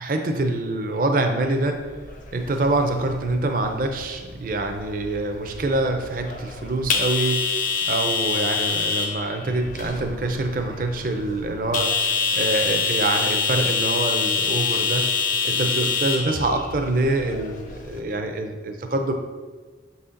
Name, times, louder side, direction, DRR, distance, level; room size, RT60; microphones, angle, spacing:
voice 1, 0.0-1.8 2.3-15.1 15.4-19.1, right 2 dB, 50° right, 5 dB, 0.5 m, -25 dB
sound 1, 1.9-18.0, left 5 dB, 45° left, 0.6 m, -27 dB
6.3 x 4.1 x 3.8 m, 1.4 s
head